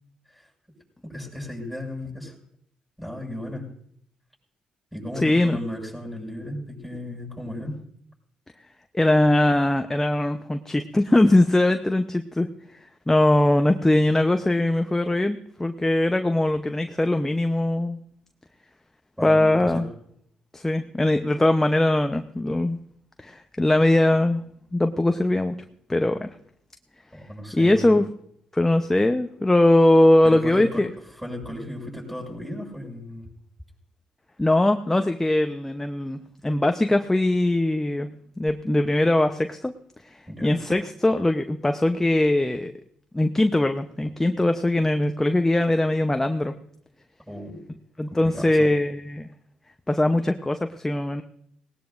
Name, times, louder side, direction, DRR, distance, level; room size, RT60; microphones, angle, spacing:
voice 1, 1.0-2.3 3.0-3.6 4.9-7.8 19.2-19.8 27.1-28.0 30.2-30.8 31.2-33.3 40.3-40.6 47.3-47.6 48.2-48.6, left 1 dB, 5° right, -2 dB, 6.9 m, -35 dB
voice 2, 5.2-5.6 8.9-12.5 13.1-18.0 19.2-19.9 20.5-22.8 23.2-24.4 24.7-25.5 25.9-26.3 27.5-28.1 28.5-30.9 34.4-38.1 38.4-39.7 40.0-42.7 43.1-46.5 48.0-49.3 49.9-51.2, left 1 dB, 15° left, 7 dB, 0.8 m, -21 dB
18.5 x 18.5 x 2.6 m, 0.70 s
supercardioid pair, 55°, 3 cm